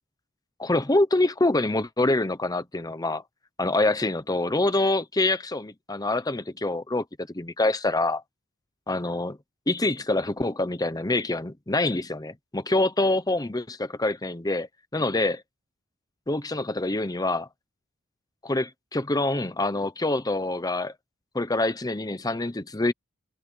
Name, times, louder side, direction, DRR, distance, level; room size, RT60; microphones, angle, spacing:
voice 1, 0.6-3.2 3.6-7.0 7.3-8.2 8.9-9.4 9.7-14.7 14.9-15.4 16.3-17.5 18.4-20.9 21.3-22.9, left 2 dB, 20° left, 0.9 m, -25 dB
head